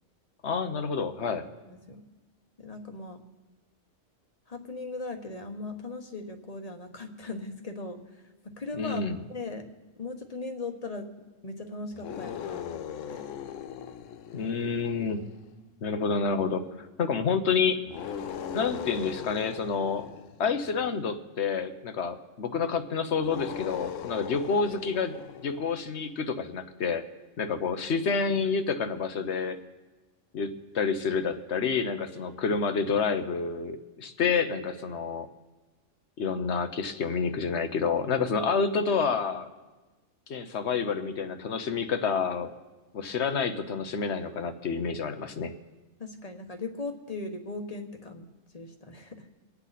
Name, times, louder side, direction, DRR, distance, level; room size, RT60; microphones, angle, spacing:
voice 1, 0.4-1.5 8.8-9.2 14.3-15.2 15.8-17.8 18.5-20.1 20.4-25.2 25.4-27.0 27.4-29.6 30.3-35.3 36.2-39.5 40.3-42.5 42.9-45.5, left 5 dB, 60° left, 9 dB, 1.2 m, -28 dB
voice 2, 1.6-2.0 2.6-3.2 4.5-9.0 9.3-9.7 10.0-11.1 11.4-13.3 46.0-48.3 48.5-49.3, left 3 dB, 30° left, 5 dB, 1.2 m, -38 dB
sound 1, 11.9-15.5 17.9-21.0 23.2-25.9, left 8 dB, 80° left, 1.0 m, -39 dB
24.5 x 8.4 x 4.1 m, 1.2 s
omnidirectional pair, 1.3 m